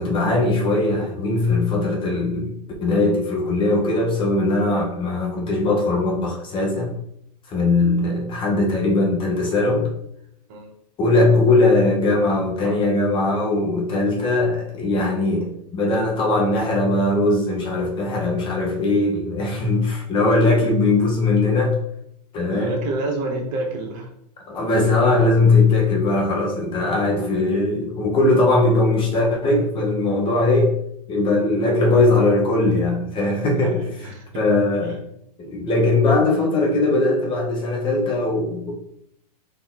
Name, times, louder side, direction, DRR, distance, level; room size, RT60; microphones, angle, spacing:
voice 1, 0.0-2.5 2.8-6.9 7.5-9.9 11.0-21.8 22.3-22.8 24.5-30.7 31.1-35.0 35.4-38.7, left 2 dB, 25° left, 0 dB, 0.9 m, -20 dB
voice 2, 22.5-24.1 33.6-34.4, right 2 dB, 45° right, 0 dB, 1.3 m, -28 dB
4.2 x 2.8 x 3.8 m, 0.72 s
hypercardioid pair, 125°, 21 cm